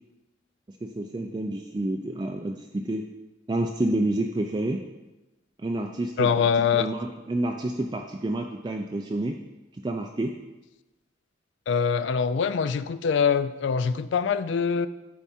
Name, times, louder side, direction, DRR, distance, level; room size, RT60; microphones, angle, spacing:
voice 1, 0.8-3.0 3.5-4.8 5.6-6.5 6.7-9.4 9.8-10.4, right 1 dB, 20° right, 3 dB, 0.3 m, -29 dB
voice 2, 6.2-6.9 11.7-14.9, left 6 dB, 70° left, 14 dB, 0.3 m, -24 dB
9.0 x 4.7 x 4.3 m, 1.1 s
head